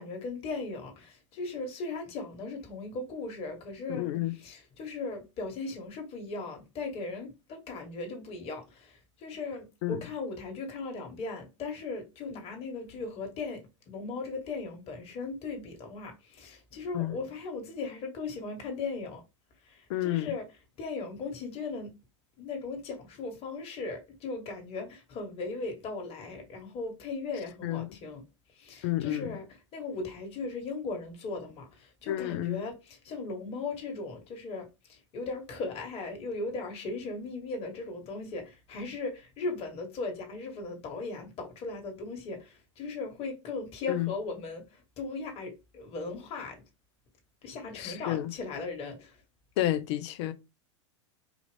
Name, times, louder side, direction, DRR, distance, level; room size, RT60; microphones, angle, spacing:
voice 1, 0.0-4.1 4.4-19.2 19.6-20.5 20.8-21.9 22.4-28.2 28.6-29.5 29.7-46.6 47.4-49.1, left 3 dB, 40° left, 1.7 m, -38 dB
voice 2, 3.9-4.3 9.8-10.0 16.9-17.1 19.9-20.3 27.6-27.9 28.8-29.4 32.1-32.6 43.9-44.1 47.7-48.3 49.6-50.3, left 14 dB, 60° left, 0.7 m, -30 dB
4.8 x 2.5 x 3.4 m
hypercardioid pair, 100°, 16 cm